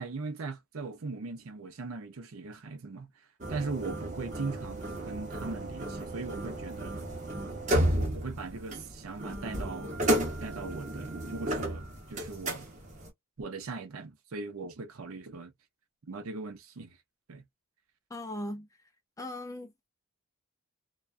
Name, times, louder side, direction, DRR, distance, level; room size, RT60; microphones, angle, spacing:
voice 1, 0.0-3.1 3.5-7.0 7.7-9.9 10.4-12.7 13.4-15.5 16.1-17.0 17.3-17.4, right 3 dB, 70° right, 0.6 m, -39 dB
sound 1, 3.4-13.1, right 1 dB, 30° right, 0.8 m, -33 dB
voice 2, 18.1-18.7 19.2-19.9, left 1 dB, 15° left, 0.4 m, -38 dB
2.3 x 2.2 x 2.4 m
head